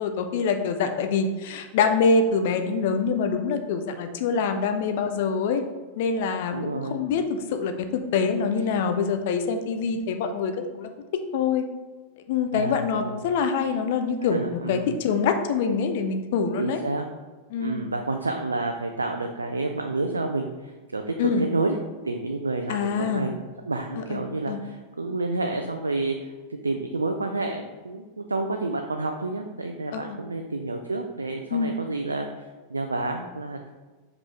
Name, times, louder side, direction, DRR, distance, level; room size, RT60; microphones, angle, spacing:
voice 1, 0.0-5.6 6.0-10.9 11.3-11.6 12.3-16.8 17.5-17.9 21.2-21.4 22.7-23.3 24.0-24.2 24.5-24.6 29.9-30.2 31.5-31.7, left 5 dB, 50° left, 7 dB, 0.6 m, -25 dB
voice 2, 6.5-7.0 12.5-13.2 14.2-15.0 16.6-17.0 17.6-21.8 22.0-26.3 26.6-32.3 32.7-33.7, right 2 dB, 80° right, 4 dB, 0.4 m, -29 dB
5.2 x 4.9 x 3.7 m, 1.3 s
figure-of-eight pair, 90°, 0 cm